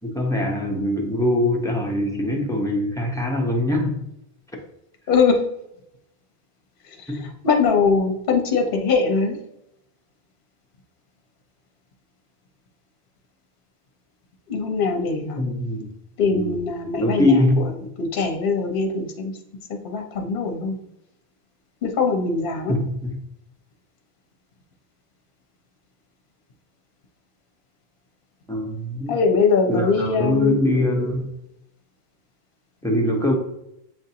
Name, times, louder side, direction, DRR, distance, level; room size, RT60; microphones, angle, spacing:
voice 1, 0.0-4.0 7.1-7.2 15.4-15.9 16.3-16.5 16.9-17.6 22.7-23.2 28.5-29.2 29.7-31.3 32.8-33.3, left 1 dB, 5° left, -1 dB, 0.7 m, -22 dB
voice 2, 5.1-5.4 6.9-9.4 14.5-15.4 16.2-17.4 18.0-19.3 19.7-20.8 21.8-22.7 29.1-30.6, left 4 dB, 60° left, 3 dB, 0.9 m, -22 dB
7.5 x 2.6 x 2.7 m, 0.82 s
omnidirectional pair, 1.1 m